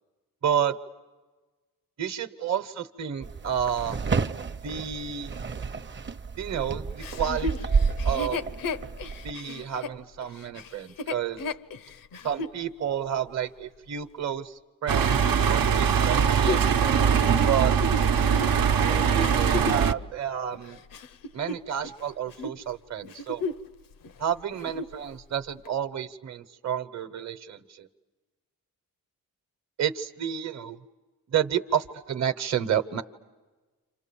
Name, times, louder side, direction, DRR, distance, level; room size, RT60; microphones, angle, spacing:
voice 1, 0.4-0.7 2.0-4.0 4.6-5.3 6.4-8.5 9.2-11.4 12.2-15.2 15.5-16.6 17.4-17.7 18.8-20.8 21.3-23.4 24.2-27.9 29.8-30.8 31.3-33.0, right 9 dB, 50° right, 10 dB, 1.1 m, -30 dB
sound 1, 3.2-9.3, right 5 dB, 35° right, 0.8 m, -30 dB
Chuckle chortle, 7.0-12.6 13.2-13.3 15.9-19.9 20.5-22.0 22.3-22.6 23.0-23.7 24.0-24.1 24.5-25.0 25.6-25.7, left 3 dB, 80° left, 0.9 m, -34 dB
sound 2, 14.9-19.9, right 7 dB, 80° right, 0.9 m, -22 dB
30.0 x 27.0 x 7.1 m, 1.3 s
wide cardioid pair, 110°, 34 cm